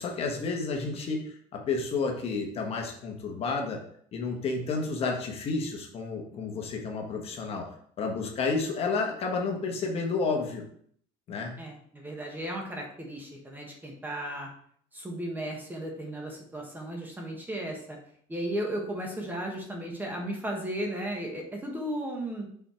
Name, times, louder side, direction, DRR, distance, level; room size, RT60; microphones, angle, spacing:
voice 1, 0.0-3.8 4.1-7.7 8.0-10.6 11.3-11.5, left 4 dB, 40° left, 2 dB, 1.2 m, -31 dB
voice 2, 11.6-14.5 14.9-18.0 18.3-22.5, right 1 dB, 10° right, 1 dB, 1.3 m, -35 dB
5.5 x 4.3 x 4.4 m, 0.63 s
cardioid pair, 135°, 15 cm